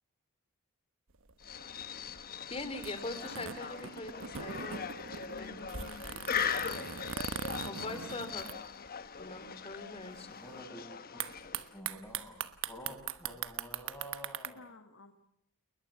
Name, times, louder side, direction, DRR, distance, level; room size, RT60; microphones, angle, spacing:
sound 1, 1.1-9.2 9.5-9.6 9.7-10.2 11.2-14.5, right 7 dB, 60° right, 1.1 m, -41 dB
sound 2, 1.4-11.8, left 7 dB, 45° left, 1.1 m, -40 dB
voice 1, 2.5-5.6 7.6-8.5 9.2-10.4, left 2 dB, 25° left, 9 dB, 3.5 m, -42 dB
voice 2, 5.3-6.9 14.4-15.1, left 3 dB, 60° left, 6 dB, 1.9 m, -53 dB
voice 3, 10.3-10.9 11.1-11.2 11.7-14.6, equal, 10° left, 3 dB, 7.3 m, -49 dB
29.0 x 21.0 x 7.2 m, 0.67 s
head